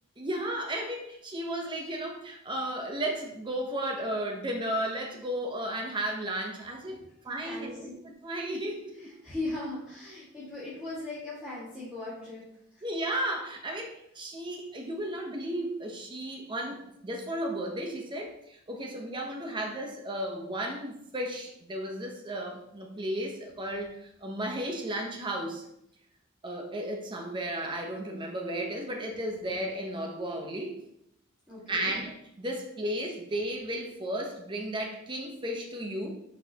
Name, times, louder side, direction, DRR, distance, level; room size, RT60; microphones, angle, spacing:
voice 1, 0.2-7.0 7.2-7.9 8.2-9.1 12.8-25.6 26.4-30.8 31.7-36.1, right 1 dB, 25° right, 1 dB, 0.8 m, -34 dB
voice 2, 7.4-7.9 8.9-12.4 12.7-12.8 31.5-31.9, left 2 dB, 5° right, -12 dB, 1.8 m, -38 dB
6.3 x 5.9 x 2.8 m, 0.76 s
head